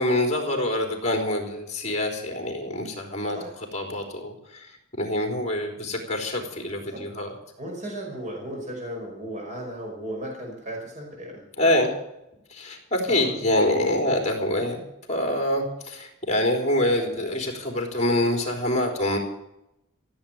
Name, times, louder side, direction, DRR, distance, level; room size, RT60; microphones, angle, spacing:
voice 1, 0.0-3.4 3.7-4.7 5.0-7.3 11.6-11.9 12.5-14.8 15.1-19.2, left 1 dB, 35° left, 2 dB, 3.8 m, -25 dB
voice 2, 7.6-11.4 13.1-13.3, right 1 dB, 35° right, 0 dB, 5.3 m, -35 dB
16.0 x 8.7 x 8.9 m, 0.84 s
head